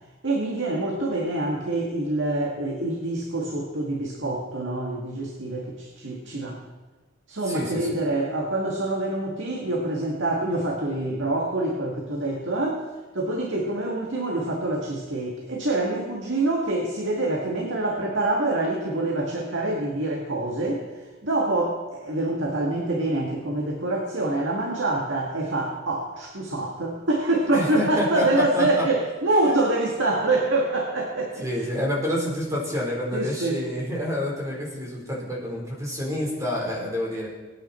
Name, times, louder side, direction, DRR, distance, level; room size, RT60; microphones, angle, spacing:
voice 1, 0.2-6.6 7.3-12.8 13.1-20.8 21.2-31.5 33.1-33.6, right 2 dB, 75° right, -1 dB, 2.0 m, -26 dB
voice 2, 7.5-8.0 27.5-28.8 29.5-29.7 31.4-37.3, equal, 15° right, -3 dB, 4.4 m, -28 dB
23.5 x 9.8 x 4.5 m, 1.2 s
head